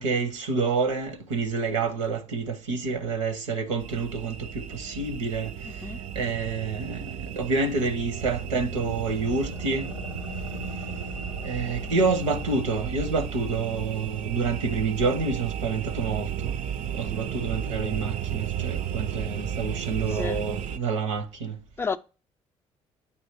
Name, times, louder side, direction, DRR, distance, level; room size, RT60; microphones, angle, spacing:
voice 1, 0.0-5.5 6.1-9.9 11.4-16.5 16.9-21.5, right 4 dB, 80° right, 0.8 m, -28 dB
sound 1, 3.8-20.8, right 9 dB, 55° right, 0.4 m, -34 dB
voice 2, 5.6-6.0 20.1-20.4 21.8-22.0, left 5 dB, 15° left, 0.4 m, -31 dB
sound 2, 7.8-13.4, left 3 dB, 80° left, 0.5 m, -40 dB
8.3 x 2.9 x 4.3 m
figure-of-eight pair, 50°, 16 cm